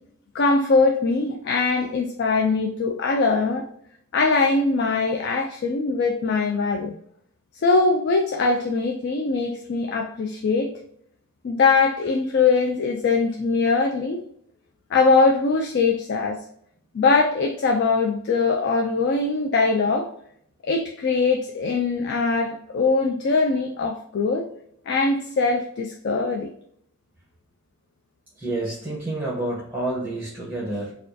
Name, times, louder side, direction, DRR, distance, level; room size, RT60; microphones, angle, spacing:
voice 1, 0.3-3.7 4.1-7.0 7.6-10.7 11.4-14.2 14.9-16.4 16.9-20.1 20.6-24.5 24.9-26.5, left 4 dB, 55° left, 3 dB, 0.4 m, -21 dB
voice 2, 28.4-30.9, right 2 dB, 10° right, -7 dB, 0.9 m, -29 dB
4.4 x 2.3 x 2.6 m, 0.70 s
head